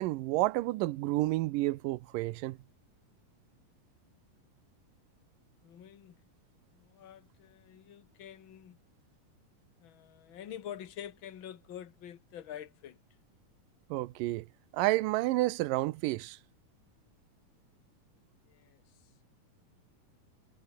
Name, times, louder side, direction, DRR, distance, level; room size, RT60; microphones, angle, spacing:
voice 1, 0.0-2.6 13.9-14.5 14.7-16.4, right 18 dB, 90° right, 2.4 m, -30 dB
voice 2, 5.6-6.2 6.7-8.8 9.8-13.0 18.5-18.8, left 10 dB, 45° left, 1.9 m, -47 dB
omnidirectional pair, 3.8 m